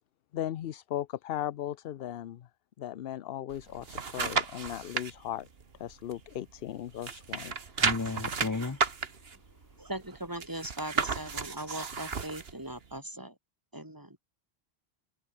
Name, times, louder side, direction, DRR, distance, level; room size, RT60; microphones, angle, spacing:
voice 1, 0.3-2.5 2.8-5.5 5.8-7.5, left 11 dB, 65° left, 0.8 m, -37 dB
sound 1, 3.5-5.1 5.6-6.7 7.0-12.5 13.0-13.1, right 5 dB, 65° right, 1.7 m, -33 dB
voice 2, 7.8-8.8, left 3 dB, 20° left, 0.7 m, -33 dB
voice 3, 9.8-13.3 13.7-14.2, right 1 dB, 20° right, 3.5 m, -39 dB
omnidirectional pair, 1.1 m